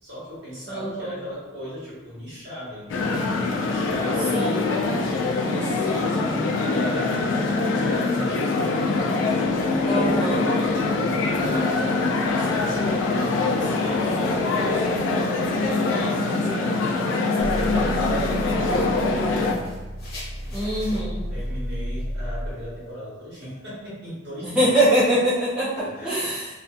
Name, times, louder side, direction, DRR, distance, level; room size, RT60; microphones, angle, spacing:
voice 1, 0.0-3.3 3.6-4.7 5.2-7.3 7.6-9.0 10.2-14.9 15.5-19.7 20.4-20.6 21.1-24.7 25.8-26.4, equal, 60° right, -8 dB, 1.2 m, -37 dB
voice 2, 0.7-1.1 4.3-4.7 9.8-10.5 20.5-21.2 24.4-25.7 26.0-26.5, right 1 dB, 5° right, -10 dB, 0.6 m, -23 dB
sound 1, 2.9-19.5, left 3 dB, 70° left, 0.3 m, -23 dB
sound 2, 14.4-22.9, equal, 50° left, 0.9 m, -41 dB
sound 3, 17.4-22.6, equal, 35° right, 0.9 m, -32 dB
2.5 x 2.4 x 2.4 m, 1.2 s
head